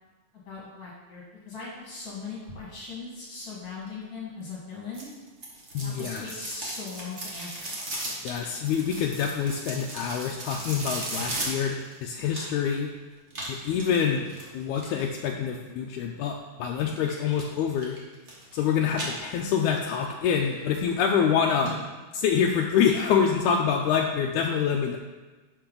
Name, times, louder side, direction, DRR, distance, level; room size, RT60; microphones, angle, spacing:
voice 1, 0.3-5.1 5.8-7.8 20.3-20.6, left 4 dB, 40° left, -5 dB, 1.9 m, -40 dB
sound 1, 4.9-12.7 13.3-15.0 17.0-17.5 17.8-18.6 18.9-19.8 20.2-20.3 20.9-21.0 21.3-21.4 21.6-21.7 22.1-22.2, right 1 dB, 35° right, 1.1 m, -36 dB
voice 2, 5.7-6.3 8.2-12.9 13.5-14.3 14.5-18.0 18.5-21.7 22.1-25.0, left 7 dB, 80° left, 1 dB, 1.9 m, -26 dB
11.5 x 5.6 x 3.8 m, 1.3 s
omnidirectional pair, 3.7 m